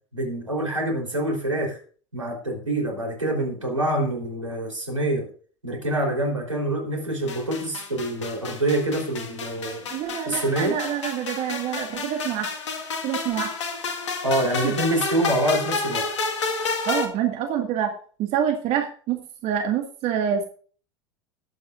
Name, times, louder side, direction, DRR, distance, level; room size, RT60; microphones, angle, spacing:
voice 1, 0.1-1.8 2.1-5.3 5.6-9.9 10.3-10.8 14.2-16.1, right 1 dB, 85° right, 0 dB, 3.8 m, -26 dB
sound 1, 7.3-17.1, left 4 dB, 70° left, 1.7 m, -30 dB
voice 2, 9.9-12.5 13.0-13.5 14.6-14.7 16.9-17.9 18.2-20.4, right 9 dB, 45° right, 3 dB, 1.9 m, -26 dB
19.0 x 8.5 x 2.5 m, 0.41 s
figure-of-eight pair, 75°, 16 cm